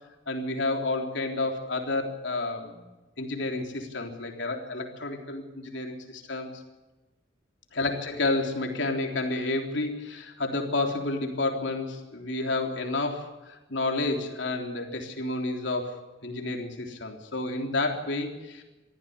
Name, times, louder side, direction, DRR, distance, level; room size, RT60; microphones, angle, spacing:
voice 1, 0.3-2.9 3.2-6.6 7.7-18.6, left 2 dB, 65° left, 3 dB, 3.6 m, -30 dB
23.5 x 15.0 x 8.2 m, 1.1 s
head